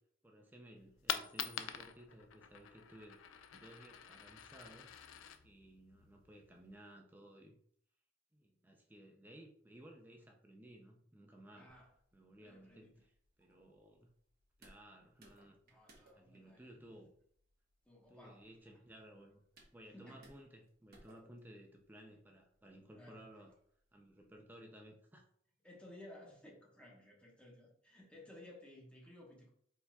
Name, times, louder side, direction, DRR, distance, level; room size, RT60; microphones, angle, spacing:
voice 1, 0.2-3.2 3.5-4.9 5.4-7.6 8.3-11.7 12.1-13.1 13.4-14.1 14.6-15.6 16.1-17.1 18.1-19.4 19.7-23.5 23.9-25.3, right 1 dB, 10° right, 1 dB, 0.4 m, -57 dB
Coin (dropping), 0.8-6.7, left 9 dB, 90° left, 0.4 m, -46 dB
voice 2, 11.5-11.9 12.4-13.0 15.7-16.9 17.9-18.5 19.9-20.3 23.0-23.2 25.6-29.5, left 1 dB, 5° left, -3 dB, 1.1 m, -57 dB
sound 1, 11.7-24.4, right 1 dB, 50° right, 1.3 m, -69 dB
4.6 x 4.0 x 2.3 m, 0.64 s
head